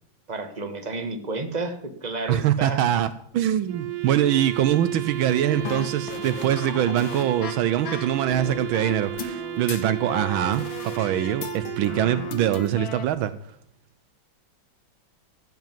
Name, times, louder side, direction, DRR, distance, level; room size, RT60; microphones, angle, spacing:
voice 1, 0.3-2.8, right 3 dB, 20° right, 7 dB, 1.5 m, -31 dB
voice 2, 2.3-13.3, right 11 dB, 80° right, 12 dB, 1.5 m, -23 dB
Wind instrument woodwind instrument, 3.7-12.9, right 13 dB, 60° right, 1.2 m, -34 dB
sound 1, 5.5-13.1, left 6 dB, 70° left, 2.1 m, -36 dB
15.5 x 7.9 x 7.4 m, 0.72 s
omnidirectional pair, 2.3 m